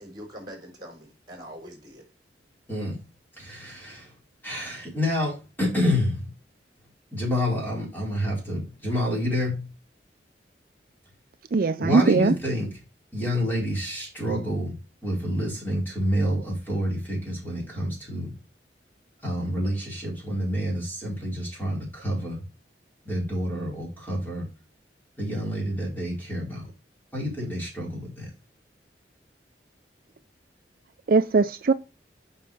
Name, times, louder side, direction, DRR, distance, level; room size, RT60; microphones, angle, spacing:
voice 1, 0.0-2.0, equal, 25° right, 4.0 m, -43 dB
voice 2, 2.7-3.0 3.3-4.1 4.4-6.3 7.1-9.7 11.8-12.8 13.1-18.3 19.2-22.5 23.0-24.5 25.2-26.7 27.1-28.3, left 1 dB, 10° left, 4.8 m, -28 dB
voice 3, 11.5-12.3 31.1-31.7, right 4 dB, 55° right, 0.4 m, -20 dB
9.1 x 5.6 x 3.5 m
head